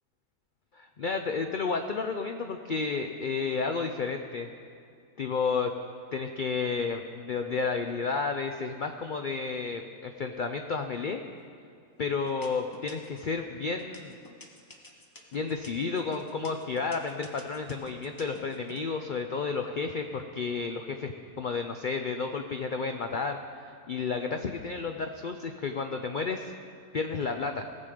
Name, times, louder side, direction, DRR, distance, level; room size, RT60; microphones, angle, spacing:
voice 1, 0.7-4.5 5.2-5.7 6.1-11.2 12.0-14.2 15.3-26.5 26.9-27.7, left 4 dB, 80° left, 5 dB, 0.4 m, -31 dB
sound 1, 11.3-11.8 12.3-13.3 13.8-18.8, left 2 dB, 15° left, 0.8 m, -50 dB
18.5 x 7.4 x 5.0 m, 2.2 s
omnidirectional pair, 1.6 m